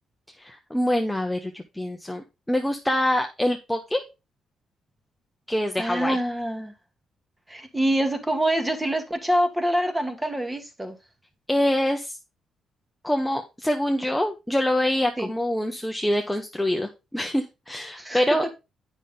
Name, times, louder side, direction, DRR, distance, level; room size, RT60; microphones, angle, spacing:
voice 1, 0.4-4.0 5.5-6.2 11.5-12.2 13.0-18.4, left 1 dB, 5° left, 3 dB, 0.8 m, -25 dB
voice 2, 5.8-6.7 7.5-11.0 15.2-15.3 18.0-18.2, right 1 dB, 10° right, 7 dB, 1.5 m, -25 dB
8.4 x 5.5 x 3.7 m, 0.27 s
cardioid pair, 90°, 0 cm